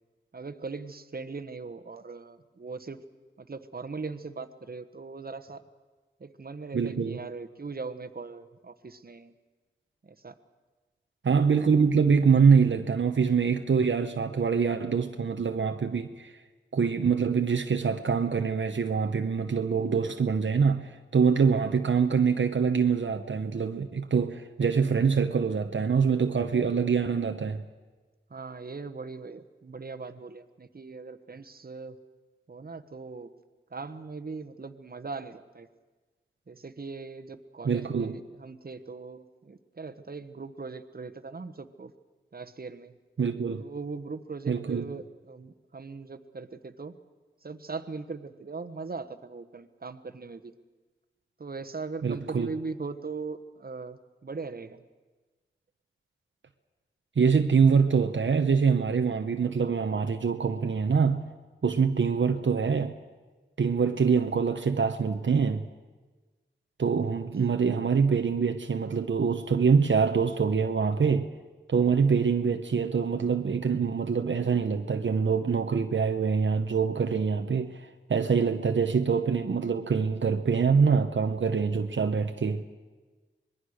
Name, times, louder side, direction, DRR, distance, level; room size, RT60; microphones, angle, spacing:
voice 1, 0.3-3.0 3.4-5.6 6.2-9.3 10.0-10.3 28.3-32.0 32.5-33.3 33.7-35.7 36.5-41.9 42.3-43.0 43.6-46.9 47.4-50.5 51.4-54.8, right 4 dB, 50° right, 1.2 m, -40 dB
voice 2, 6.7-7.2 11.2-16.3 16.7-27.6 37.6-38.2 43.2-43.6 44.5-45.0 52.0-52.5 57.2-61.3 61.6-63.0 63.6-65.7 66.8-71.3 71.7-82.6, right 5 dB, 75° right, 1.0 m, -25 dB
25.5 x 20.5 x 6.5 m
cardioid pair, 50°, 20 cm